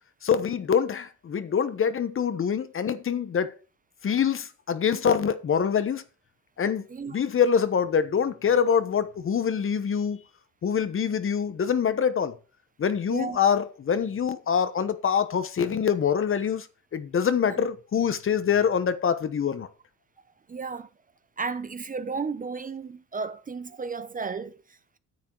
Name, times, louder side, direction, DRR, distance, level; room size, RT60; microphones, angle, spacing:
voice 1, 0.2-3.5 4.0-6.0 6.6-6.8 7.1-10.2 10.6-12.4 12.8-16.7 16.9-19.7, left 7 dB, 45° left, 1.0 m, -25 dB
voice 2, 13.1-13.4 17.5-17.6 20.5-20.9 21.4-25.0, right 4 dB, 25° right, 0.7 m, -34 dB
9.5 x 7.4 x 4.5 m
cardioid pair, 90°, 30 cm